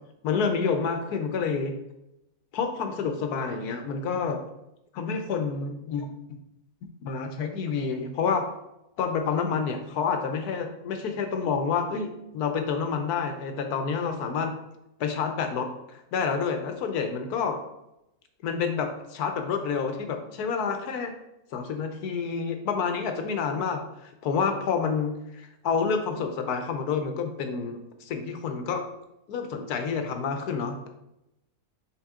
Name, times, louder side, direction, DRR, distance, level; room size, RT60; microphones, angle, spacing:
voice 1, 0.2-1.7 2.5-4.4 4.9-6.1 7.0-8.4 9.0-14.5 15.0-17.6 18.4-21.1 21.5-28.8 29.3-30.9, left 5 dB, 85° left, 6 dB, 1.3 m, -28 dB
5.9 x 4.8 x 3.6 m, 0.88 s
omnidirectional pair, 1.6 m